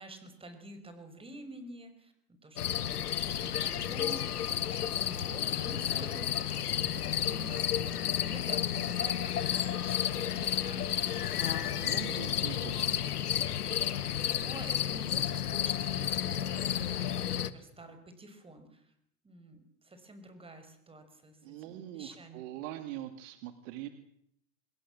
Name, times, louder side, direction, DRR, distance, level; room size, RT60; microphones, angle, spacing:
voice 1, 0.0-13.2 14.2-18.9 19.2-22.5, right 1 dB, 10° right, 8 dB, 6.1 m, -49 dB
sound 1, 2.6-17.5, left 10 dB, 85° left, 1.7 m, -32 dB
voice 2, 11.7-13.0 13.8-13.9 21.4-23.9, right 13 dB, 55° right, 9 dB, 2.5 m, -43 dB
27.0 x 21.5 x 7.6 m, 0.73 s
hypercardioid pair, 115°, 44 cm